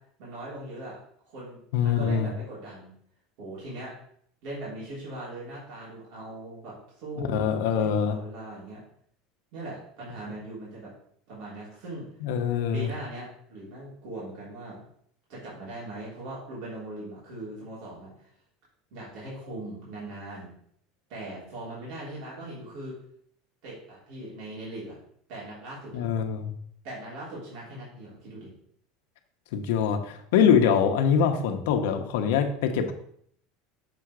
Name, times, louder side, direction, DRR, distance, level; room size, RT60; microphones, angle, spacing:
voice 1, 0.2-1.0 1.3-2.9 3.4-3.9 4.4-8.8 9.5-10.9 11.3-12.0 12.7-14.8 15.3-18.3 18.9-20.5 21.1-23.0 23.6-25.0 25.3-26.0 26.8-28.5, right 1 dB, 55° right, -7 dB, 3.0 m, -40 dB
voice 2, 1.7-2.3 7.2-8.1 12.2-12.9 25.9-26.5 29.5-32.9, left 7 dB, 75° left, 6 dB, 0.9 m, -24 dB
6.9 x 3.8 x 4.7 m, 0.65 s
cardioid pair, 165°, 0 cm